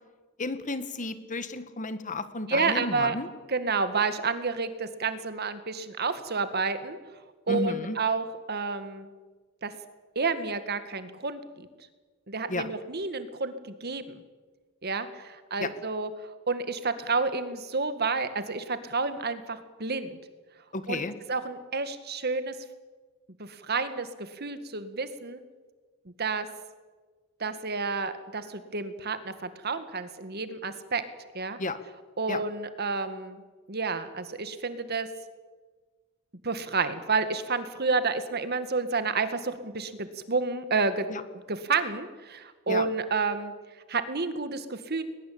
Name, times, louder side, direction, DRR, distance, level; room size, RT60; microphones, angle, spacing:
voice 1, 0.4-3.3 7.5-8.0 12.5-12.7 15.6-15.7 20.7-21.1 31.6-31.8 32.3-32.4 41.1-41.2 42.7-42.8, left 2 dB, 35° left, 12 dB, 1.6 m, -32 dB
voice 2, 2.5-3.2 3.5-7.0 7.5-9.1 9.6-9.7 10.2-11.7 12.3-14.2 14.8-16.1 16.5-20.2 20.9-21.0 21.3-22.5 23.4-25.4 26.2-26.5 27.4-31.0 31.3-31.6 32.2-33.4 33.7-35.1 36.4-41.1 41.5-43.5 43.9-45.0, right 4 dB, 50° right, 11 dB, 2.0 m, -30 dB
21.5 x 20.5 x 8.8 m, 1.3 s
head